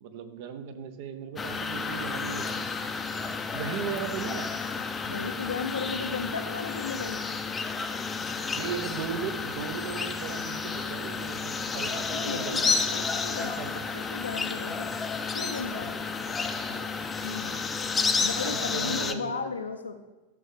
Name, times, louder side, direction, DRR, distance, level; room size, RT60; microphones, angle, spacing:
voice 1, 0.0-2.7 3.5-4.5 8.5-12.7 13.4-13.7 16.4-16.8 18.2-19.5, right 7 dB, 50° right, 8 dB, 0.8 m, -37 dB
sound 1, 1.4-19.1, left 4 dB, 15° left, 0.6 m, -31 dB
voice 2, 5.1-7.2 12.1-14.9 15.3-16.1 17.2-17.6 18.2-19.9, left 5 dB, 75° left, 5 dB, 0.6 m, -35 dB
12.0 x 6.5 x 3.3 m, 1.1 s
figure-of-eight pair, 90°, 0 cm